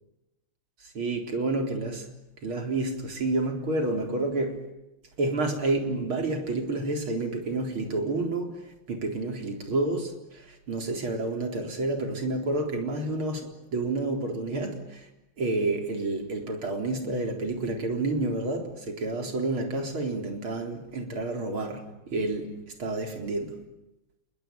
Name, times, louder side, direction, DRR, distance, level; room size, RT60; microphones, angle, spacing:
voice 1, 0.8-2.1 2.4-4.6 5.2-8.6 8.9-15.1 15.4-21.8 22.1-23.6, right 2 dB, 80° right, 4.9 m, -29 dB
27.5 x 22.5 x 9.2 m
omnidirectional pair, 2.3 m